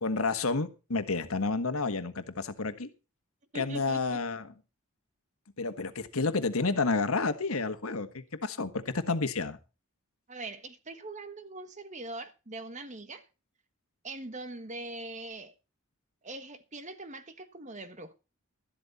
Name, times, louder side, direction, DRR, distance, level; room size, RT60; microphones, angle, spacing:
voice 1, 0.0-2.9 3.5-4.5 5.6-9.6, left 3 dB, 75° left, 1.5 m, -30 dB
voice 2, 3.5-4.2 10.3-13.2 14.0-15.5 16.2-18.1, right 2 dB, 35° right, 1.4 m, -42 dB
13.0 x 12.0 x 4.2 m
head